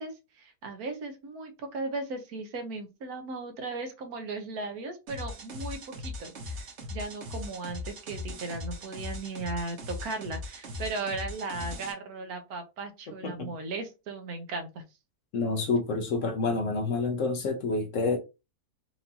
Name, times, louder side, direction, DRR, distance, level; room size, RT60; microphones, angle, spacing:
voice 1, 0.0-14.8, right 3 dB, 70° right, 1.2 m, -37 dB
sound 1, 5.1-11.9, left 2 dB, 50° right, 1.2 m, -39 dB
voice 2, 13.2-13.5 15.3-18.2, left 3 dB, 60° left, 1.0 m, -28 dB
4.5 x 2.6 x 2.7 m
omnidirectional pair, 1.7 m